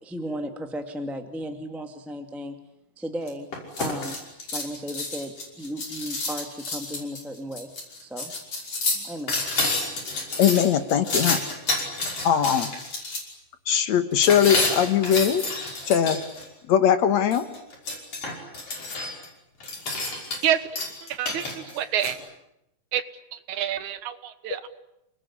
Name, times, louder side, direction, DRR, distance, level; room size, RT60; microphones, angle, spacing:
voice 1, 0.0-2.5 3.0-3.5 3.8-4.2 4.5-7.7 8.0-8.3 8.9-9.4, equal, ahead, 4 dB, 1.5 m, -35 dB
sound 1, 3.3-13.2 14.2-16.5 17.3-19.3 19.6-20.5 20.8-22.1, left 2 dB, 45° left, 6.8 m, -29 dB
voice 2, 10.4-11.4 12.2-12.8 13.7-15.4 15.9-16.2 16.7-17.5, left 8 dB, 60° left, 10 dB, 2.3 m, -20 dB
voice 3, 21.0-22.2 22.9-23.0 23.3-24.7, right 10 dB, 70° right, 11 dB, 2.6 m, -27 dB
29.0 x 19.5 x 9.9 m, 0.85 s
omnidirectional pair, 3.9 m